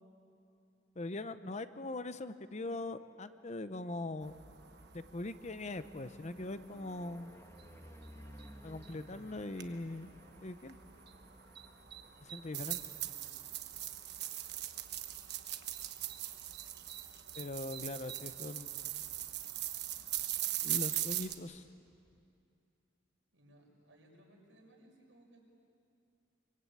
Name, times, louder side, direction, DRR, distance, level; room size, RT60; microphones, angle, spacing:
voice 1, 1.0-4.3 4.9-7.3 8.6-10.1 10.4-10.8 12.2-12.8 17.4-19.0 20.6-21.6, left 2 dB, 40° left, 11 dB, 0.8 m, -41 dB
sound 1, 3.8-17.6 18.0-18.5 18.7-18.8 19.1-19.2 19.4-22.2, equal, 15° left, 1.3 m, -59 dB
sound 2, 4.2-21.3, right 12 dB, 60° right, 1.3 m, -42 dB
voice 2, 12.7-13.5 23.3-25.4, right 1 dB, 85° right, -1 dB, 6.6 m, -63 dB
25.0 x 25.0 x 8.7 m, 2.6 s
head